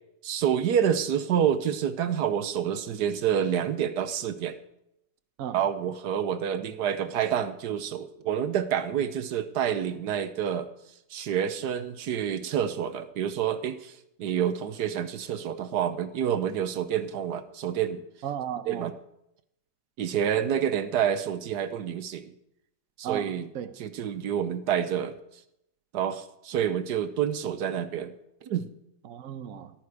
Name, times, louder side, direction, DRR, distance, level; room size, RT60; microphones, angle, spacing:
voice 1, 0.2-4.6 5.5-10.7 11.1-13.9 14.2-18.0 18.7-18.9 20.0-22.3 23.0-23.5 23.8-25.1 25.9-28.1 28.4-28.7, right 9 dB, 80° right, 11 dB, 1.5 m, -28 dB
voice 2, 18.2-18.9 23.0-23.7 29.0-29.7, right 9 dB, 60° right, 9 dB, 1.2 m, -35 dB
14.0 x 13.0 x 4.9 m, 0.80 s
omnidirectional pair, 1.7 m